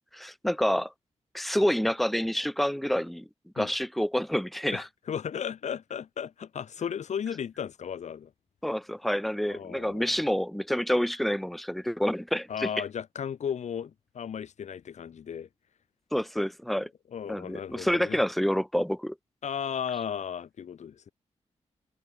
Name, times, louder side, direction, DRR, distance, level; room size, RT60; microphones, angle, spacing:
voice 1, 0.1-0.9 1.3-3.3 3.5-4.9 8.6-12.7 16.1-16.9 17.3-19.1, equal, ahead, 1.3 m, -28 dB
voice 2, 4.7-8.3 9.5-10.2 12.5-15.5 17.1-18.2 19.4-21.1, left 8 dB, 80° left, 2.0 m, -35 dB
wide cardioid pair, 115°, 12 cm